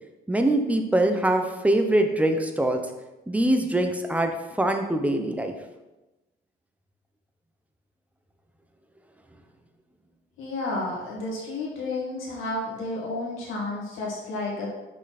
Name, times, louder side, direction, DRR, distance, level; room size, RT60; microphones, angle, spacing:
voice 1, 0.3-2.8 3.3-5.6, right 1 dB, 5° right, 4 dB, 0.9 m, -23 dB
voice 2, 10.4-14.7, left 2 dB, 85° left, -4 dB, 2.3 m, -31 dB
6.2 x 5.5 x 4.3 m, 1.1 s
cardioid pair, 90°, 20 cm